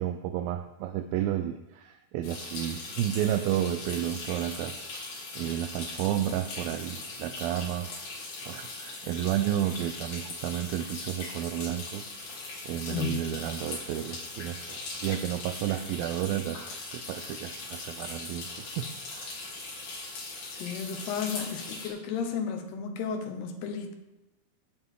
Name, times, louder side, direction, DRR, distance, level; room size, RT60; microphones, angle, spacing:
voice 1, 0.0-7.9 8.5-12.1 12.7-19.4, right 11 dB, 80° right, 7 dB, 2.2 m, -32 dB
sound 1, 2.2-21.9, left 3 dB, 65° left, 4.8 m, -40 dB
voice 2, 12.9-13.3 20.5-23.9, left 6 dB, 85° left, 4 dB, 3.3 m, -33 dB
17.5 x 6.8 x 3.7 m, 0.97 s
omnidirectional pair, 4.6 m